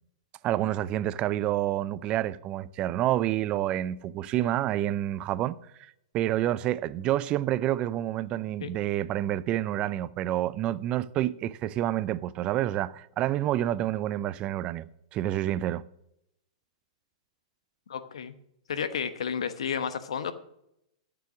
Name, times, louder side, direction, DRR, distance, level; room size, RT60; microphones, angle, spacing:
voice 1, 0.4-15.8, right 13 dB, 35° right, 0.5 m, -28 dB
voice 2, 17.9-18.3 18.7-20.3, left 7 dB, 70° left, 1.1 m, -31 dB
13.0 x 6.9 x 6.1 m
hypercardioid pair, 110°, 3 cm